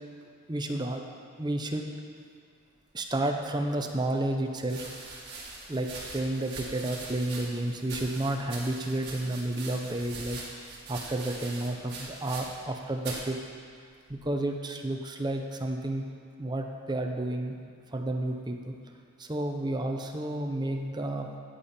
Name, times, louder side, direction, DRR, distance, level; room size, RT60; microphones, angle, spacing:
voice 1, 0.5-1.0 1.4-1.9 2.9-4.9 5.7-13.4 14.1-16.0 16.4-17.5 17.9-18.7 19.2-21.3, right 1 dB, 20° right, 3 dB, 0.8 m, -31 dB
sound 1, 4.7-12.7 13.0-13.3 14.1-14.5, right 3 dB, 55° right, 2.3 m, -42 dB
14.0 x 8.5 x 4.4 m, 2.1 s
head